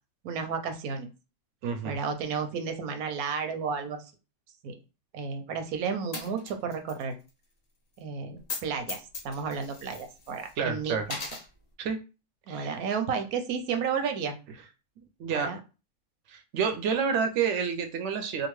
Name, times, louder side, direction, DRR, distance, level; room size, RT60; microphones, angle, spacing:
voice 1, 0.2-1.1 1.8-4.1 4.6-4.8 5.1-7.2 8.0-11.2 12.5-14.4 15.3-15.6, right 6 dB, 85° right, 7 dB, 1.1 m, -32 dB
voice 2, 1.6-1.9 10.6-11.0 11.8-12.0 12.5-12.8 15.2-15.5 16.3-18.5, right 6 dB, 65° right, 7 dB, 0.8 m, -29 dB
Coin (dropping), 6.1-7.0 7.3-7.4 8.4-8.6 8.9-10.5 11.0-11.5, left 4 dB, 45° left, 0.5 m, -38 dB
2.8 x 2.4 x 3.0 m, 0.31 s
omnidirectional pair, 1.5 m